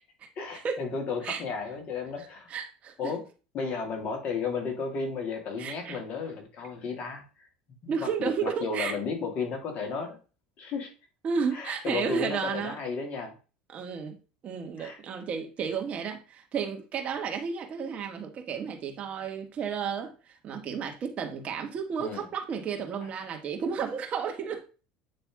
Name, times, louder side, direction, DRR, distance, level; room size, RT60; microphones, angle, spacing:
voice 1, 0.4-2.5 3.0-3.3 3.5-7.5 7.8-10.2 10.6-10.9 11.5-13.3 14.8-15.0 22.0-22.2, left 5 dB, 45° left, 2.4 m, -34 dB
voice 2, 2.5-3.1 5.6-6.0 7.9-8.9 11.2-12.8 13.7-24.6, right 6 dB, 40° right, 1.8 m, -32 dB
9.1 x 3.4 x 3.6 m
supercardioid pair, 95°, 3 cm